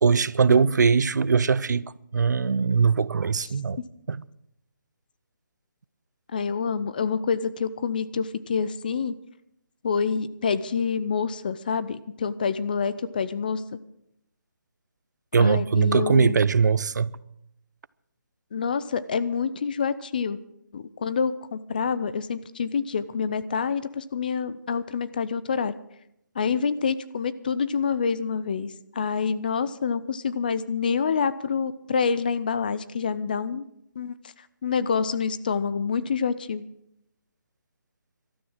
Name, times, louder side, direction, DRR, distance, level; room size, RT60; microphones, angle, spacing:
voice 1, 0.0-3.8 4.1-4.2 15.3-17.1, right 5 dB, 60° right, 0.6 m, -21 dB
voice 2, 6.3-9.1 9.8-13.8 15.4-16.4 18.5-20.4 20.7-25.7 26.4-33.7 34.0-34.1 34.6-36.6, left 6 dB, 25° left, 0.5 m, -27 dB
13.0 x 12.5 x 6.4 m
hypercardioid pair, 170°, 11 cm